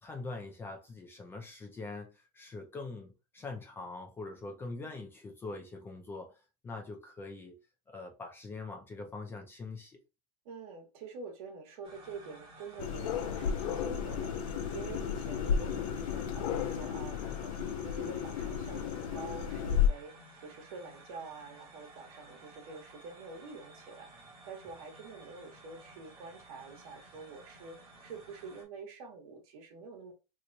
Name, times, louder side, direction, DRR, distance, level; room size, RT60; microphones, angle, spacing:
voice 1, 0.0-6.3 6.6-7.6 7.9-10.0, left 3 dB, 10° left, 0.4 m, -43 dB
voice 2, 10.4-24.1 24.4-30.1, right 4 dB, 65° right, 1.2 m, -47 dB
sound 1, 11.8-28.6, right 2 dB, 30° right, 1.0 m, -55 dB
sound 2, 12.8-19.9, left 8 dB, 60° left, 0.5 m, -33 dB
3.0 x 2.1 x 3.8 m
supercardioid pair, 160°, 20 cm